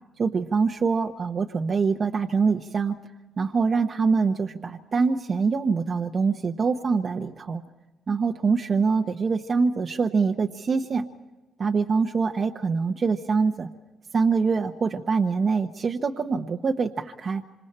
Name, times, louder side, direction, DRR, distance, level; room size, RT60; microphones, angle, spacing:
voice 1, 0.2-3.0 3.4-7.6 8.1-11.1 11.6-13.7 14.1-17.4, right 5 dB, 45° right, 3 dB, 1.1 m, -24 dB
27.0 x 26.0 x 4.4 m, 1.2 s
cardioid pair, 90°, 0 cm